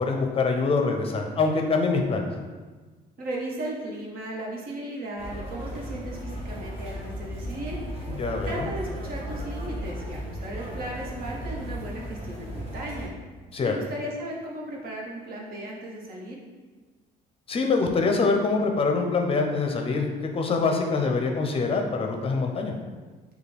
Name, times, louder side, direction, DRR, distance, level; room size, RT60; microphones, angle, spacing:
voice 1, 0.0-2.3 8.2-8.7 13.5-13.7 17.5-22.7, left 4 dB, 35° left, 3 dB, 0.6 m, -24 dB
voice 2, 3.2-7.8 8.4-13.1 13.6-16.4, right 1 dB, 60° right, -2 dB, 1.2 m, -36 dB
sound 1, 5.2-13.1, equal, 35° right, 1.2 m, -35 dB
6.6 x 2.3 x 3.4 m, 1.3 s
cardioid pair, 110°, 17 cm